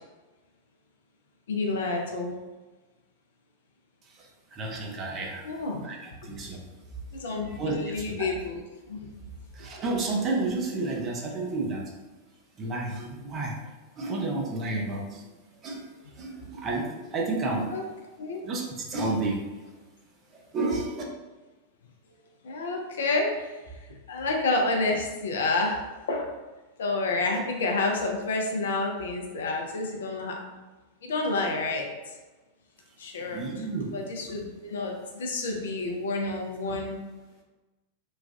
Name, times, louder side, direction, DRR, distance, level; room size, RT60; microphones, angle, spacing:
voice 1, 1.5-2.3 5.4-5.9 6.3-6.4 7.1-8.6 8.9-9.1 17.5-17.8 18.2-18.4 22.4-23.6 24.1-26.3 26.8-30.4 31.0-31.9 33.0-37.0, left 3 dB, 60° left, 1 dB, 0.5 m, -29 dB
voice 2, 4.5-5.5 5.8-6.6 7.5-7.8 8.2-8.3 9.6-11.9 12.6-13.5 14.0-15.2 15.6-15.8 16.2-17.7 18.4-19.4 20.3-21.0 33.3-33.9, right 3 dB, 30° right, 0 dB, 0.6 m, -31 dB
3.2 x 2.2 x 2.3 m, 1.2 s
figure-of-eight pair, 90°, 0 cm